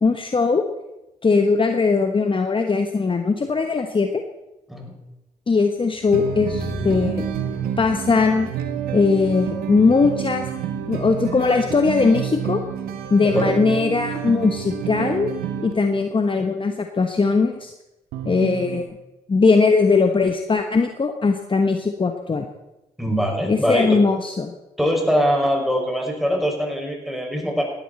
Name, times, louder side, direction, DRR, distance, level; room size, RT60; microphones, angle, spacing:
voice 1, 0.0-0.6 1.2-4.2 5.5-7.2 7.8-8.5 8.9-10.5 10.9-12.6 13.1-15.3 15.6-17.7 18.2-18.9 19.3-22.5 23.5-24.5, left 4 dB, 35° left, 6 dB, 1.1 m, -20 dB
sound 1, 5.9-11.9, right 2 dB, 60° right, 5.9 m, -36 dB
sound 2, 6.1-15.7 18.1-18.8, right 8 dB, 80° right, 1.4 m, -29 dB
voice 2, 13.2-13.5 23.0-23.9 24.8-27.6, equal, ahead, 0 dB, 6.3 m, -22 dB
17.5 x 11.5 x 4.3 m, 0.97 s
hypercardioid pair, 45°, 16 cm